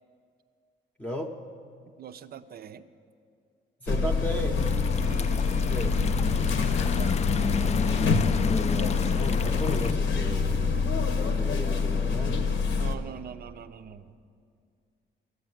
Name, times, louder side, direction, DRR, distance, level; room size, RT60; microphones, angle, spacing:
voice 1, 1.0-1.4 3.8-4.6 5.7-6.1 8.5-10.7 11.1-12.6, equal, 5° left, 2 dB, 0.8 m, -36 dB
voice 2, 2.0-2.9 5.1-5.4 6.6-7.8 12.7-14.1, right 8 dB, 50° right, 12 dB, 0.6 m, -44 dB
sound 1, 3.9-13.0, left 4 dB, 70° left, 1.0 m, -26 dB
sound 2, 4.5-9.9, left 6 dB, 35° left, 0.4 m, -31 dB
12.0 x 8.1 x 7.7 m, 2.3 s
cardioid pair, 90°, 20 cm